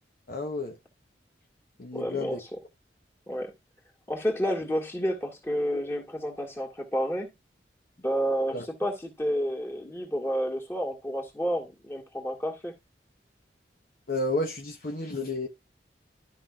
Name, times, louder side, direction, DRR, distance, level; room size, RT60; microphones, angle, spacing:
voice 1, 0.3-0.8 1.8-2.4 8.5-8.6 14.1-15.5, left 2 dB, 55° left, 1.0 m, -31 dB
voice 2, 1.9-2.6 3.3-3.5 4.1-7.3 8.0-12.7, equal, 15° left, 2.0 m, -30 dB
12.5 x 5.6 x 2.4 m
head